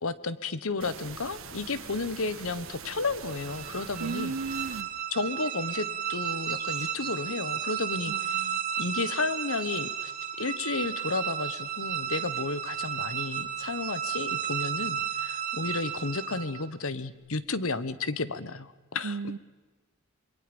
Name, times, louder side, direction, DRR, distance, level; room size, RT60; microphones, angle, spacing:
voice 1, 0.0-4.3 5.1-8.4 8.8-10.1 10.4-19.1, left 3 dB, 70° left, 1.1 m, -32 dB
sound 1, 0.8-4.8, right 6 dB, 65° right, 1.5 m, -43 dB
sound 2, 3.3-16.7, right 9 dB, 35° right, 2.5 m, -33 dB
voice 2, 4.0-4.9 8.1-8.6 19.0-19.4, right 4 dB, 85° right, 0.6 m, -35 dB
sound 3, 5.2-7.8 8.2-8.3, right 5 dB, 20° right, 1.8 m, -48 dB
27.5 x 22.5 x 5.3 m
head